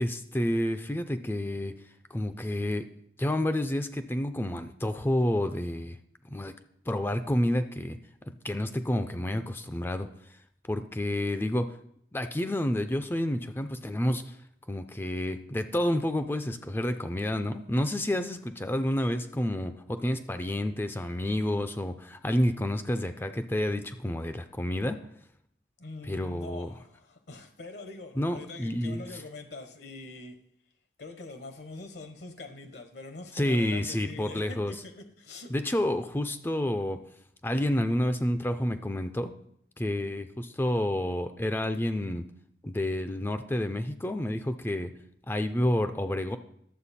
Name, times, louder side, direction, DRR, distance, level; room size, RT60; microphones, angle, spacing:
voice 1, 0.0-1.8 2.1-2.9 3.2-6.0 6.3-6.5 6.9-8.0 8.3-10.1 10.7-11.8 12.1-14.4 14.7-25.0 26.0-26.7 28.2-29.0 33.3-34.7 35.5-37.0 37.4-39.3 39.8-42.2 42.6-44.9 45.3-46.4, left 1 dB, 10° left, 0.4 m, -29 dB
voice 2, 25.8-30.4 31.0-35.5, left 3 dB, 65° left, 1.0 m, -44 dB
11.5 x 7.4 x 4.2 m
head